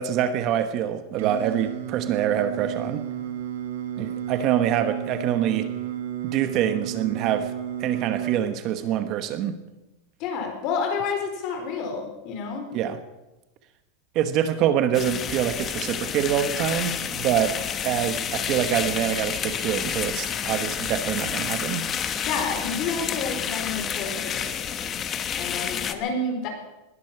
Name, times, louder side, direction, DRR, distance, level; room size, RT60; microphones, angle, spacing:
voice 1, 0.0-3.0 4.0-5.7 6.2-7.5 7.8-9.6 12.7-13.0 14.1-17.6 17.8-21.9, right 10 dB, 40° right, 10 dB, 1.2 m, -25 dB
Singing, 1.2-8.4, right 11 dB, 75° right, 1.7 m, -32 dB
voice 2, 10.2-12.7 22.3-24.5 25.4-26.5, left 4 dB, 45° left, 4 dB, 4.3 m, -29 dB
sound 1, 14.9-25.9, left 8 dB, 25° left, 1.0 m, -29 dB
20.0 x 11.5 x 5.9 m, 1.0 s
supercardioid pair, 150°, 0 cm